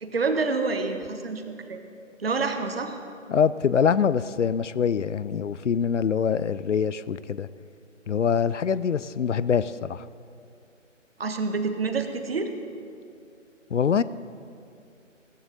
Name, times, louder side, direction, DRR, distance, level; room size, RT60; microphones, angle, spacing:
voice 1, 0.0-1.4 1.7-1.8 2.2-3.0 11.2-12.5, right 4 dB, 50° right, 7 dB, 1.3 m, -27 dB
voice 2, 3.3-7.5 8.1-10.0 13.7-14.0, left 7 dB, 65° left, 17 dB, 0.5 m, -24 dB
16.0 x 15.0 x 4.0 m, 2.5 s
figure-of-eight pair, 150°, 38 cm